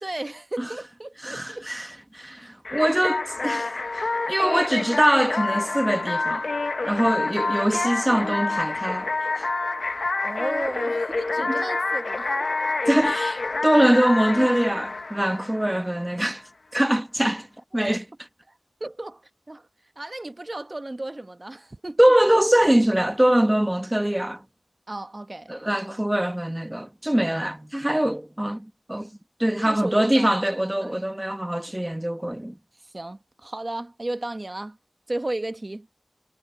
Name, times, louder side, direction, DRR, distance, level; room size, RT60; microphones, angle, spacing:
voice 1, 0.0-1.7 2.8-3.2 10.2-12.9 18.8-19.7 20.0-22.0 24.9-25.6 29.6-30.3 30.8-31.0 32.9-34.8 35.1-35.9, right 2 dB, 40° right, 0.9 m, -34 dB
voice 2, 1.2-6.5 6.8-9.1 9.4-9.5 12.9-16.4 16.7-17.5 17.7-18.1 22.0-24.4 25.5-29.1 29.4-32.5, right 1 dB, 15° right, 1.0 m, -23 dB
sound 1, 2.6-16.1, left 3 dB, 80° left, 0.7 m, -27 dB
wide cardioid pair, 50°, 0 cm